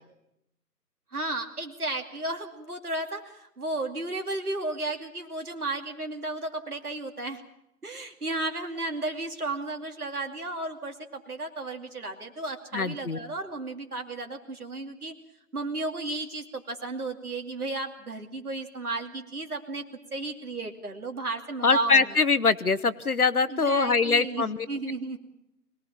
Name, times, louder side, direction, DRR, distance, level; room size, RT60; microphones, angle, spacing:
voice 1, 1.1-7.4 7.8-15.1 15.5-19.8 20.1-22.0 23.5-25.2, right 2 dB, 65° right, 3 dB, 2.7 m, -33 dB
voice 2, 12.7-13.2 21.6-24.7, left 4 dB, 65° left, 14 dB, 1.1 m, -23 dB
24.0 x 19.0 x 7.3 m, 0.81 s
figure-of-eight pair, 155°, 48 cm